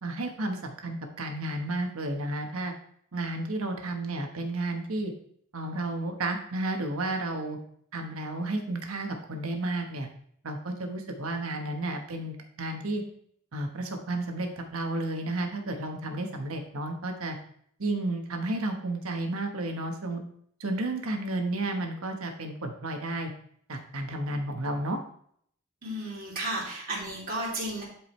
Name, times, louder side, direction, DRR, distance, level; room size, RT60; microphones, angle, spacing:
voice 1, 0.0-2.7 3.1-5.1 5.5-7.6 7.9-10.1 10.4-13.0 13.5-17.4 17.8-20.2 20.6-23.3 23.7-25.0, right 2 dB, 75° right, 4 dB, 1.2 m, -32 dB
voice 2, 25.8-27.8, right 1 dB, 45° right, -6 dB, 3.0 m, -33 dB
11.0 x 4.8 x 3.2 m, 0.65 s
head